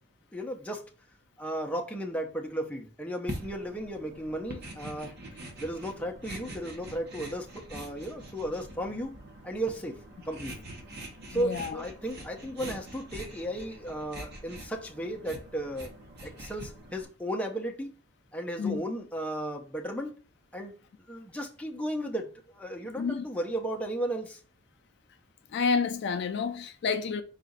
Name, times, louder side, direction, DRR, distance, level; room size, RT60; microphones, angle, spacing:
voice 1, 0.3-0.8 1.4-5.1 5.6-9.2 9.4-10.0 10.2-10.7 11.3-15.9 16.2-17.9 18.3-20.2 20.5-20.7 21.1-24.4, right 1 dB, 5° left, 0.6 m, -35 dB
sound 1, 3.3-17.1, right 1 dB, 50° right, 1.0 m, -44 dB
voice 2, 11.3-11.8 18.6-18.8 23.0-23.2 25.5-27.2, left 5 dB, 50° left, 0.3 m, -29 dB
4.8 x 2.4 x 3.9 m
head